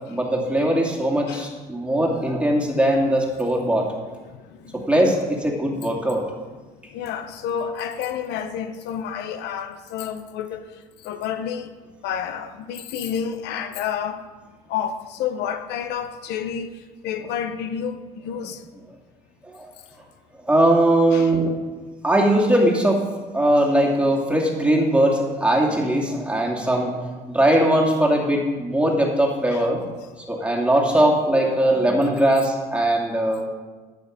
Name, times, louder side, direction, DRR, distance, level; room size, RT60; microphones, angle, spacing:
voice 1, 0.1-3.9 4.7-6.2 19.4-19.7 20.5-21.6 22.0-29.8 30.3-33.4, right 1 dB, 5° right, 2.5 m, -20 dB
voice 2, 4.3-4.8 6.9-11.7 12.0-14.2 14.7-18.6 21.1-21.3 29.5-29.7, left 8 dB, 85° left, 0.9 m, -30 dB
11.0 x 9.1 x 5.2 m
cardioid pair, 110°, 17 cm